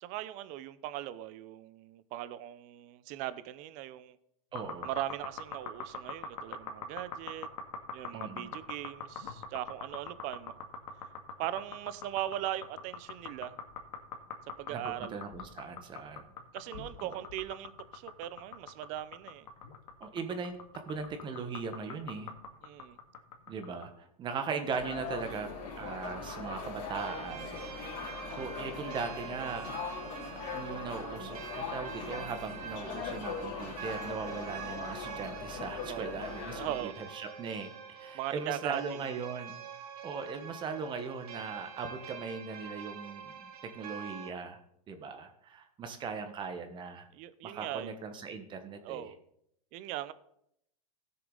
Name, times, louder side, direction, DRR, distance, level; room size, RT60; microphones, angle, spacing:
voice 1, 0.0-4.2 4.8-7.5 7.9-10.6 11.4-13.6 14.6-15.2 16.5-19.5 22.6-23.0 35.8-36.2 36.5-36.9 38.1-38.8 47.1-47.9 48.8-49.2 49.7-50.1, right 13 dB, 40° right, 15 dB, 0.7 m, -39 dB
sound 1, 4.5-23.9, left 4 dB, 85° left, 2.0 m, -43 dB
voice 2, 4.5-4.9 8.1-8.5 14.7-16.3 17.0-17.2 20.0-20.6 20.9-22.3 23.5-25.5 25.8-27.6 28.3-29.7 30.5-39.6 40.0-44.6 44.9-47.1 47.4-49.1, right 5 dB, 25° right, 7 dB, 1.3 m, -39 dB
sound 2, 24.7-36.8, left 5 dB, 45° left, 3.2 m, -41 dB
sound 3, 27.0-44.3, right 7 dB, 75° right, 2.3 m, -46 dB
16.0 x 6.8 x 4.0 m, 0.75 s
supercardioid pair, 135°, 20 cm